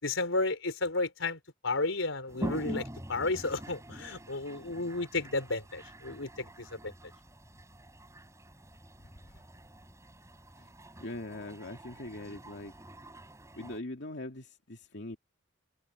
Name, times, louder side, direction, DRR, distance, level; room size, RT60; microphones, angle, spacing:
voice 1, 0.0-6.9, left 3 dB, 85° left, 4.2 m, -33 dB
Toilet flush, 2.3-13.8, equal, 15° right, 4.4 m, -45 dB
voice 2, 11.0-12.7 13.5-15.2, left 1 dB, 60° left, 2.5 m, -41 dB
head